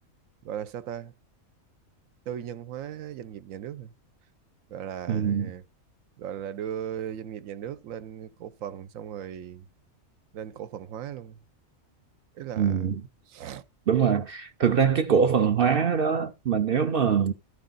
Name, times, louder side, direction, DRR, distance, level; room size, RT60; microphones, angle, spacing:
voice 1, 0.4-1.1 2.3-3.9 4.7-5.6 6.2-9.7 10.3-11.4 12.3-12.9 13.3-13.6, right 9 dB, 85° right, 1.0 m, -37 dB
voice 2, 5.1-5.5 12.6-13.0 13.9-17.3, right 7 dB, 55° right, 0.7 m, -23 dB
13.0 x 5.1 x 3.9 m
omnidirectional pair, 1.4 m